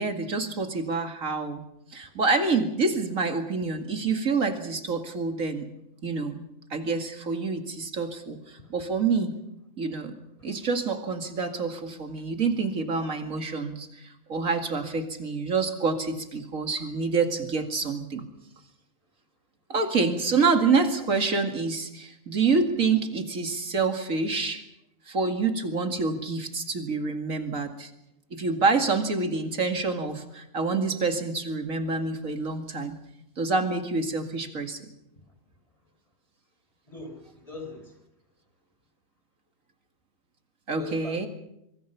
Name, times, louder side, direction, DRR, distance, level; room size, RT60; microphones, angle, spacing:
voice 1, 0.0-1.6 1.9-5.7 6.0-6.4 6.7-9.3 9.8-10.2 10.4-18.2 19.7-24.6 25.1-27.9 28.3-33.0 33.4-34.9 40.7-41.3, right 4 dB, 80° right, 6 dB, 2.6 m, -27 dB
voice 2, 36.8-38.0 40.8-41.2, left 2 dB, 25° left, 5 dB, 4.4 m, -42 dB
24.5 x 24.0 x 5.8 m, 0.82 s
omnidirectional pair, 1.4 m